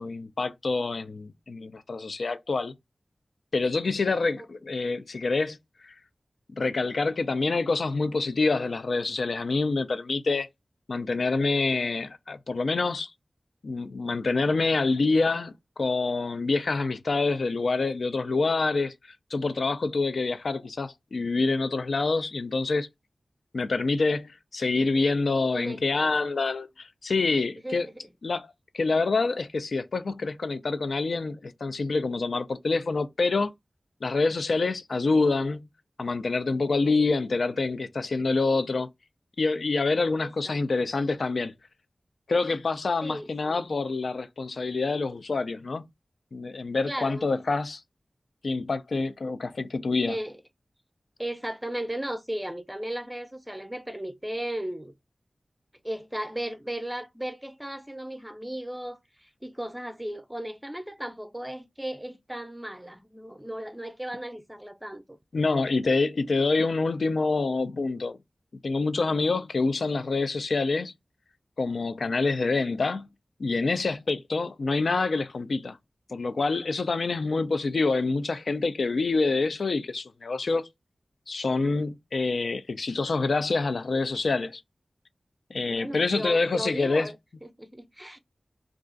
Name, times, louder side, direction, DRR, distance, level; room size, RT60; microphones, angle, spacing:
voice 1, 0.0-2.7 3.5-5.6 5.8-5.9 6.6-10.5 10.9-13.1 13.6-18.9 19.3-22.9 23.5-27.9 28.2-33.5 34.0-35.6 36.0-38.9 39.4-41.5 42.3-45.8 46.3-47.8 48.4-50.2 65.3-68.2 68.6-70.9 71.6-73.0 73.4-75.8 76.1-80.7 81.3-84.6 85.5-87.1, left 3 dB, 85° left, 0.4 m, -26 dB
voice 2, 25.5-26.2 27.6-28.1 40.2-40.9 43.0-43.8 46.9-47.3 50.1-50.4 51.2-54.9 55.8-65.2 85.7-88.2, right 1 dB, 5° right, 0.6 m, -36 dB
2.4 x 2.3 x 3.7 m
wide cardioid pair, 65°, 0 cm